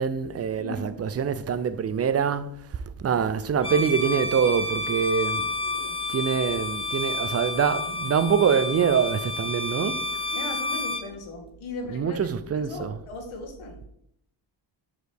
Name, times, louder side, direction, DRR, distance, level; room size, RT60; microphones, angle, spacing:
voice 1, 0.0-2.5 3.0-5.5 6.1-10.0 11.9-12.9, right 7 dB, 35° right, 0.4 m, -24 dB
voice 2, 0.5-1.0 5.6-6.0 9.8-10.0 10.3-12.2 12.5-13.8, left 2 dB, 85° left, 1.5 m, -38 dB
Bowed string instrument, 3.6-11.1, left 2 dB, 10° left, 0.9 m, -30 dB
6.2 x 4.9 x 3.4 m
cardioid pair, 100°, 48 cm